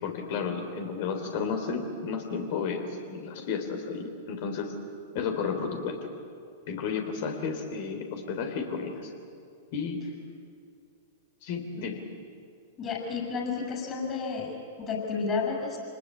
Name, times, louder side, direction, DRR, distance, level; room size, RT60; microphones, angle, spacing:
voice 1, 0.0-4.7 5.1-6.0 6.7-9.1 9.7-10.0 11.4-12.0, left 5 dB, 55° left, 5 dB, 3.9 m, -32 dB
voice 2, 12.8-15.8, left 5 dB, 30° left, 0 dB, 7.3 m, -31 dB
26.5 x 19.5 x 8.7 m, 2.4 s
figure-of-eight pair, 105°, 0 cm